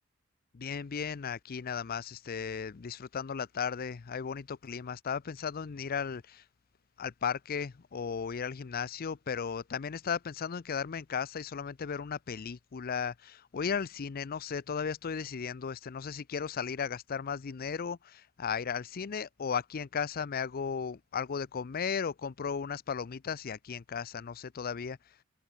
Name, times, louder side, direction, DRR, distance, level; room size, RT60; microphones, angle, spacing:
voice 1, 0.5-6.4 7.0-25.0, left 6 dB, 45° left, 0.5 m, -35 dB
open air
head